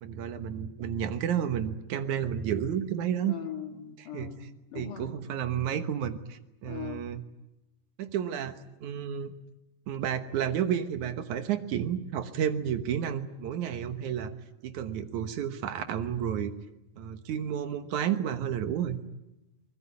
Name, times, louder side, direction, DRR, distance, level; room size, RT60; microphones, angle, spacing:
voice 1, 0.0-3.4 4.0-4.3 4.8-7.2 8.0-9.3 9.9-14.3 14.6-16.5 17.0-19.0, right 9 dB, 75° right, 9 dB, 2.5 m, -31 dB
voice 2, 3.3-5.1 6.7-7.0, left 9 dB, 80° left, 4 dB, 3.7 m, -40 dB
24.0 x 20.0 x 9.6 m, 0.94 s
omnidirectional pair, 3.6 m